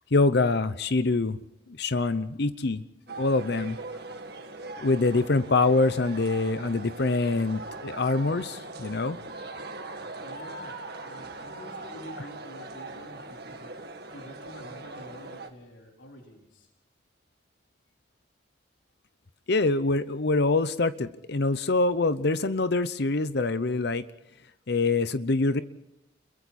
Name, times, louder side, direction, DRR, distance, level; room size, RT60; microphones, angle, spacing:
voice 1, 0.1-1.4 1.7-2.8 3.2-3.8 4.7-9.2 19.5-24.0 24.7-25.6, left 3 dB, 60° left, 13 dB, 0.8 m, -25 dB
sound 1, 3.1-15.5, right 2 dB, 55° right, 2.1 m, -41 dB
voice 2, 10.2-13.8 14.1-16.7, equal, 75° left, 1 dB, 4.2 m, -48 dB
30.0 x 22.5 x 4.3 m, 0.85 s
head